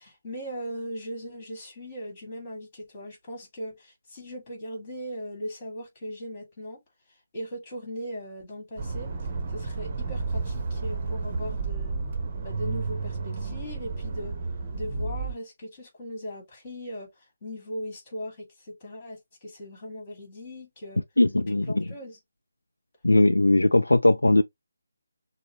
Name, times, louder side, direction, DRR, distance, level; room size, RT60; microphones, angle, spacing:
voice 1, 0.0-6.8 7.3-9.1 9.5-12.0 12.4-14.4 14.7-17.1 17.4-21.0 21.7-22.2, equal, 25° left, 2.2 m, -38 dB
Accelerating revving vroom, 8.8-15.3, right 4 dB, 30° right, 0.9 m, -31 dB
voice 2, 21.2-21.8 23.0-24.4, left 2 dB, 75° left, 0.3 m, -19 dB
6.2 x 2.1 x 3.0 m
figure-of-eight pair, 150°, 0 cm